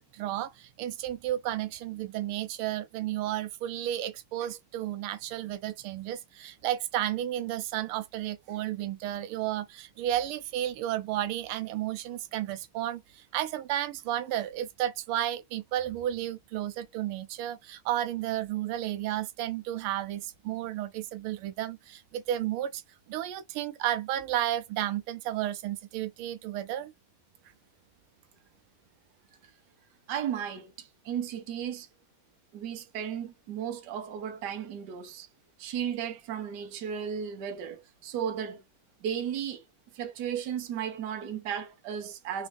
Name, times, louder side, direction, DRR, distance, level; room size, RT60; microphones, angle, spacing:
voice 1, 0.0-22.8 23.1-26.9, right 12 dB, 85° right, 1.4 m, -32 dB
voice 2, 30.1-31.9 32.5-35.3 35.6-38.6 39.0-39.6 39.9-42.5, right 8 dB, 60° right, 1.3 m, -35 dB
4.1 x 2.5 x 3.2 m
omnidirectional pair, 2.3 m